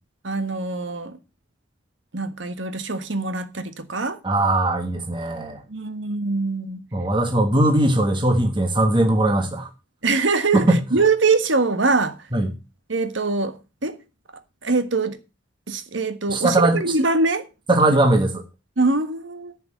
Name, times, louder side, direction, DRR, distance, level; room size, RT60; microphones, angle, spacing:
voice 1, 0.2-1.2 2.1-4.2 5.7-6.8 10.0-12.2 12.9-14.0 14.6-15.2 15.7-17.5 18.8-19.5, right 3 dB, 75° right, 1.5 m, -23 dB
voice 2, 4.2-5.6 6.9-9.7 10.5-10.8 12.3-12.5 16.3-16.8 17.7-18.4, right 1 dB, 25° right, 1.4 m, -19 dB
10.5 x 5.8 x 7.6 m
head